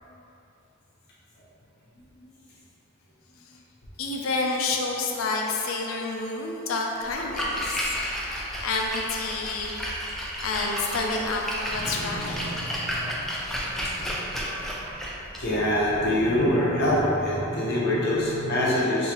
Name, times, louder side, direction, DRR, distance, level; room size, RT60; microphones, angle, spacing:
voice 1, 4.0-8.0 8.2-9.7 10.4-12.5, left 3 dB, 75° left, 0 dB, 0.4 m, -29 dB
Splash splatter, 7.1-17.0, equal, ahead, 0.4 m, -32 dB
voice 2, 11.7-13.3 13.6-15.0 15.4-19.1, left 1 dB, 55° left, -6 dB, 0.8 m, -26 dB
3.9 x 2.7 x 2.9 m, 2.9 s
head